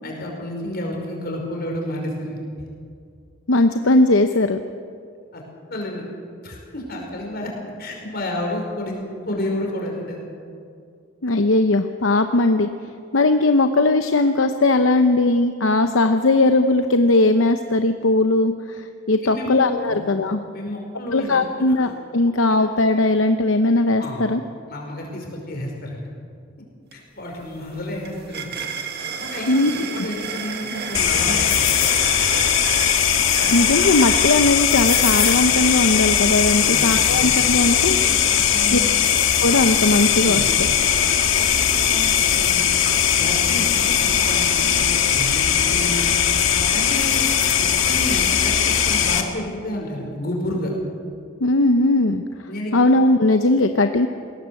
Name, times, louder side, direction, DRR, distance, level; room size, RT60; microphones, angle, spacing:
voice 1, 0.0-2.4 5.3-5.4 5.7-6.0 6.4-7.5 7.8-9.0 9.2-10.2 19.2-20.0 20.5-21.9 22.2-22.6 24.0-24.2 24.7-26.0 26.9-28.5 29.2-31.7 36.6-37.3 37.8-38.9 40.2-40.5 41.4-42.7 43.1-46.1 46.5-47.3 47.6-50.7 52.5-52.7, left 1 dB, 50° left, 0 dB, 5.3 m, -31 dB
voice 2, 3.5-4.6 11.2-12.7 13.1-20.4 21.1-24.4 29.5-29.7 33.5-38.0 38.7-38.8 39.4-40.4 51.4-52.2 52.7-54.1, left 2 dB, 75° left, 7 dB, 0.8 m, -18 dB
sound 1, 26.9-27.0 27.3-35.5, right 6 dB, 55° right, 1.9 m, -32 dB
sound 2, 30.9-49.2, left 8 dB, 90° left, 1.8 m, -19 dB
21.0 x 17.5 x 7.8 m, 2.3 s
head